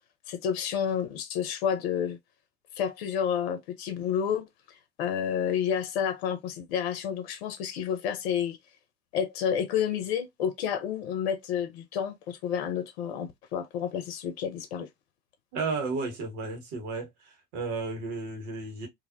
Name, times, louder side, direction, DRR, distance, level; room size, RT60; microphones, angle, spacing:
voice 1, 0.3-2.2 2.8-8.6 9.1-14.9, left 8 dB, 70° left, 0.5 m, -30 dB
voice 2, 15.5-17.1 17.5-18.9, right 3 dB, 60° right, 1.3 m, -33 dB
2.5 x 2.0 x 2.5 m
hypercardioid pair, 65°, 32 cm